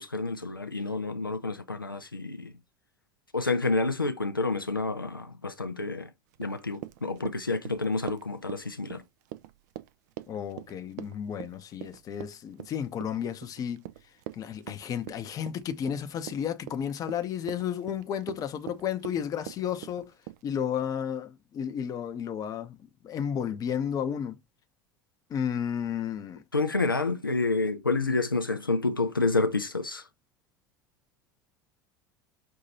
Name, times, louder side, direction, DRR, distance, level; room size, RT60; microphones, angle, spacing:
voice 1, 0.0-2.5 3.3-6.1 6.4-9.0 26.5-30.0, left 3 dB, 90° left, 0.5 m, -29 dB
Run, 6.3-20.4, right 14 dB, 55° right, 0.5 m, -43 dB
voice 2, 10.3-13.8 14.4-20.1 20.4-22.8 23.0-24.4 25.3-26.4, left 8 dB, 35° left, 0.7 m, -32 dB
5.5 x 2.7 x 2.7 m
figure-of-eight pair, 75°, 11 cm